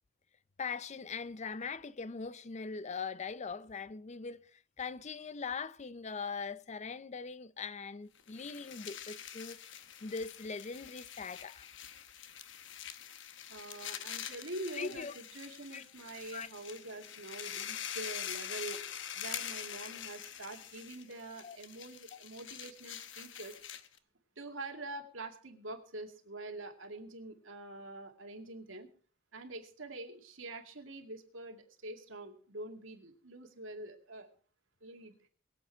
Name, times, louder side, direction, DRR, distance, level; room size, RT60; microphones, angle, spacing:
voice 1, 0.6-9.6 10.0-11.7 14.8-15.1 15.7-15.8 16.3-16.5 21.4-21.6, left 5 dB, 35° left, 0.5 m, -41 dB
sound 1, 8.2-24.0, left 9 dB, 65° left, 1.0 m, -45 dB
voice 2, 13.5-18.8 19.1-23.6 24.4-28.9 29.3-34.3 34.8-35.3, right 2 dB, 85° right, 2.3 m, -45 dB
22.0 x 8.1 x 4.6 m
head